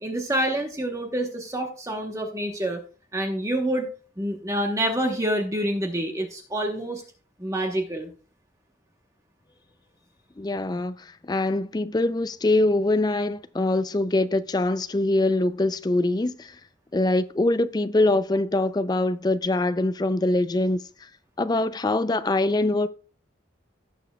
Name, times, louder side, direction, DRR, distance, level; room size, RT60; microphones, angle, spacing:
voice 1, 0.0-2.8 3.1-3.9 4.2-7.0 7.4-8.1, right 1 dB, 15° right, 1.0 m, -27 dB
voice 2, 10.4-16.6 16.9-20.8 21.4-22.9, left 2 dB, 20° left, 0.4 m, -23 dB
17.5 x 6.9 x 2.3 m
head